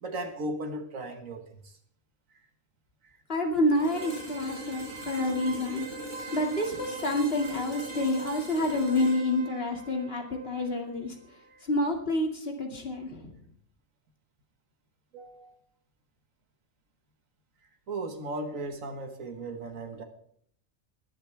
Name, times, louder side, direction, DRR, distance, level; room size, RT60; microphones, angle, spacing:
voice 1, 0.0-1.7 11.5-11.6 15.1-15.6 17.9-20.0, right 2 dB, 85° right, 6 dB, 1.9 m, -36 dB
voice 2, 3.3-5.9 6.3-11.1 11.6-13.3, left 1 dB, 50° left, 2 dB, 2.5 m, -28 dB
sound 1, 3.7-11.6, right 2 dB, 35° right, 4.5 m, -40 dB
20.0 x 11.5 x 3.4 m, 0.63 s
omnidirectional pair, 1.3 m